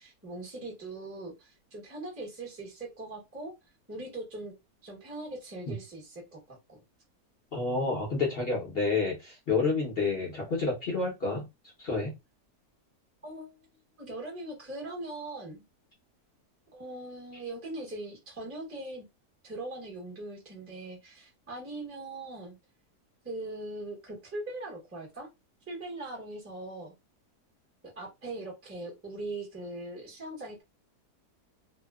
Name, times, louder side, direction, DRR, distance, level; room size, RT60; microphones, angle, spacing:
voice 1, 0.0-3.5 3.9-4.5 4.8-6.8 13.2-13.7 14.0-15.6 16.7-19.0 19.4-22.6 23.2-25.3 25.7-26.9 27.8-30.6, right 2 dB, 10° right, -2 dB, 0.6 m, -41 dB
voice 2, 7.5-11.4 11.8-12.1, left 3 dB, 45° left, -2 dB, 0.8 m, -29 dB
2.8 x 2.1 x 2.2 m, 0.23 s
omnidirectional pair, 1.7 m